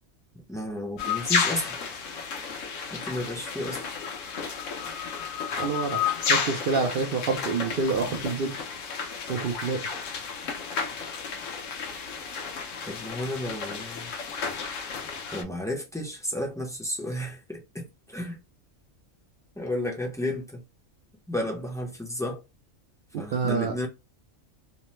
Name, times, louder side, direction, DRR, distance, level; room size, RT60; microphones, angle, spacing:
voice 1, 0.3-1.8 2.9-3.8 12.8-14.1 15.3-18.4 19.6-20.6 21.3-22.4 23.2-23.9, left 1 dB, 5° left, 0.4 m, -32 dB
sound 1, 1.0-15.4, left 5 dB, 70° left, 1.0 m, -32 dB
voice 2, 5.6-8.6 9.3-9.8 23.1-23.7, right 4 dB, 65° right, 0.5 m, -27 dB
3.0 x 2.0 x 3.0 m
omnidirectional pair, 1.4 m